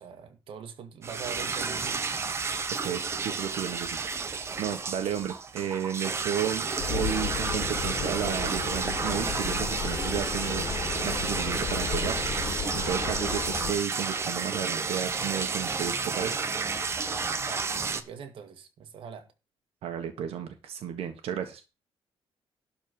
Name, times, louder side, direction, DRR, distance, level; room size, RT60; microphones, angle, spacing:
voice 1, 0.0-2.3 17.3-19.3, right 7 dB, 60° right, 1.8 m, -43 dB
sound 1, 1.0-18.0, right 5 dB, 25° right, 0.9 m, -31 dB
voice 2, 2.8-4.0 4.6-10.6 11.0-16.4 19.8-21.6, right 9 dB, 85° right, 1.5 m, -33 dB
sound 2, 6.8-13.7, left 6 dB, 40° left, 2.1 m, -34 dB
12.0 x 4.4 x 7.8 m
cardioid pair, 175°, 10 cm